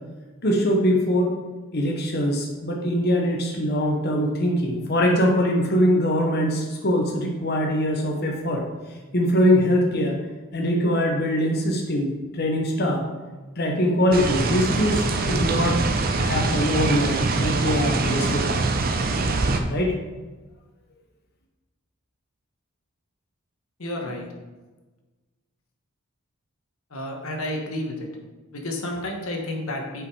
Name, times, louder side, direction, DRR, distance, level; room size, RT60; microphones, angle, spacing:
voice 1, 0.4-1.3 1.7-8.6 9.1-10.2 10.5-13.0 13.6-15.8 16.2-18.5 19.7-19.9, equal, 45° left, 0 dB, 1.0 m, -22 dB
sound 1, 14.1-19.6, right 3 dB, 40° right, 0.6 m, -24 dB
voice 2, 23.8-24.2 26.9-27.9 28.5-30.1, left 1 dB, 75° left, 1 dB, 1.3 m, -30 dB
6.3 x 5.3 x 4.8 m, 1.2 s
head